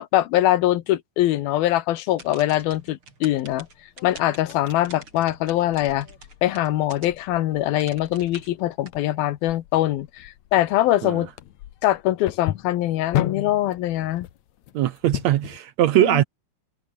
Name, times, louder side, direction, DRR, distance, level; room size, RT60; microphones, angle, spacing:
voice 1, 0.0-3.7 4.0-6.1 6.4-11.3 11.8-14.3 16.0-16.2, left 14 dB, 85° left, 3.0 m, -23 dB
sound 1, 2.1-7.4 7.8-8.9, right 3 dB, 35° right, 5.7 m, -45 dB
sound 2, 3.4-15.6, left 13 dB, 65° left, 2.0 m, -35 dB
voice 2, 14.7-16.2, right 13 dB, 75° right, 1.6 m, -20 dB
omnidirectional pair, 4.2 m